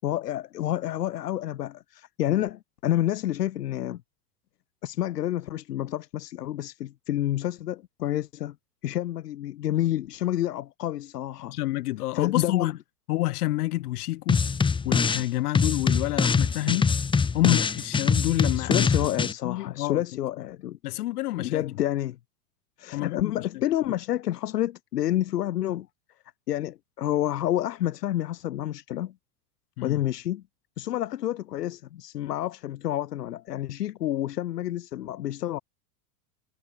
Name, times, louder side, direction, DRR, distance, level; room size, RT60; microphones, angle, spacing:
voice 1, 0.0-4.0 4.8-8.5 8.8-11.6 12.1-12.7 18.5-20.8 21.4-22.2 22.8-25.9 26.5-29.1 29.8-30.4 30.8-35.6, left 13 dB, 90° left, 4.9 m, -29 dB
voice 2, 11.5-12.7 13.1-14.4 14.9-16.9 17.3-18.9 19.4-20.0 20.8-21.6 22.9-23.5 29.8-30.0, left 17 dB, 70° left, 5.2 m, -28 dB
sound 1, 14.3-15.3 15.5-19.3, left 5 dB, 10° left, 1.2 m, -24 dB
supercardioid pair, 140°, 46 cm